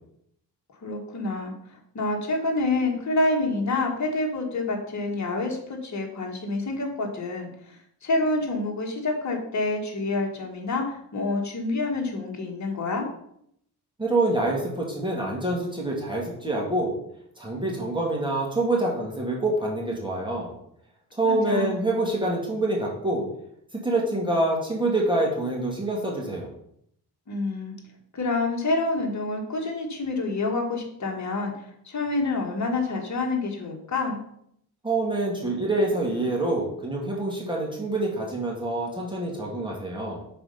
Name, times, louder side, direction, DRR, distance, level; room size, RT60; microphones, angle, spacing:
voice 1, 0.8-13.1 21.2-21.7 27.3-27.7 28.1-34.2, left 2 dB, 45° left, 1 dB, 1.7 m, -28 dB
voice 2, 14.0-16.9 17.4-20.5 21.1-23.2 23.8-26.5 34.8-40.2, right 2 dB, 10° right, -3 dB, 2.0 m, -26 dB
6.0 x 4.3 x 5.5 m, 0.71 s
cardioid pair, 90°, 40 cm